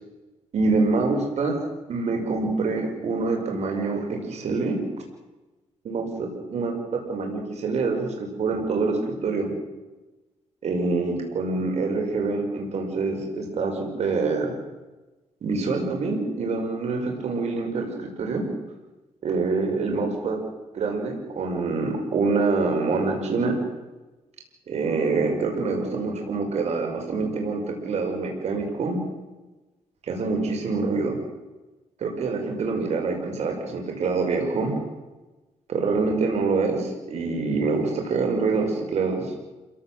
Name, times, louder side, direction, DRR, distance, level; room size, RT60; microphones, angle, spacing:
voice 1, 0.5-1.6 1.9-4.8 5.8-9.5 10.6-14.5 15.4-18.4 19.2-20.4 20.7-23.5 24.7-29.0 30.0-31.2 32.0-34.8 35.7-39.3, right 4 dB, 65° right, 2 dB, 6.2 m, -26 dB
28.0 x 17.5 x 7.9 m, 1.1 s
cardioid pair, 95°, 12 cm